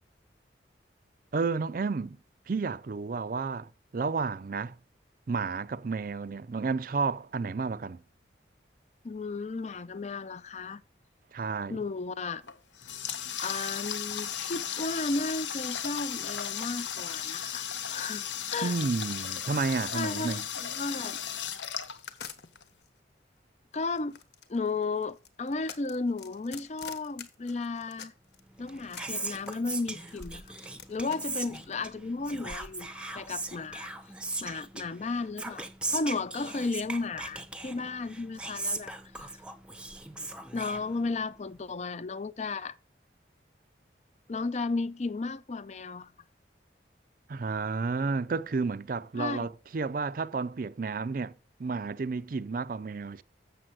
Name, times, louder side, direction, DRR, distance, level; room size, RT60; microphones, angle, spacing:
voice 1, 1.3-2.2 2.5-4.8 5.3-8.0 11.3-11.8 18.6-20.5 47.3-51.3 51.6-53.2, right 4 dB, 50° right, 0.4 m, -31 dB
voice 2, 9.0-10.8 11.7-12.4 13.4-18.2 18.5-18.8 19.9-21.2 23.7-24.2 24.5-28.1 28.6-30.4 30.9-32.9 33.1-33.9 34.4-35.6 35.9-39.3 40.5-42.8 44.3-46.1 49.2-49.5, left 3 dB, 40° left, 0.5 m, -34 dB
Water tap faucet, 12.4-22.6, left 9 dB, 90° left, 0.9 m, -35 dB
sound 1, 20.2-22.9 23.7-28.4 28.7-31.8, left 7 dB, 70° left, 1.2 m, -47 dB
Whispering, 28.5-41.4, right 2 dB, 5° right, 0.7 m, -39 dB
7.7 x 6.8 x 7.6 m
head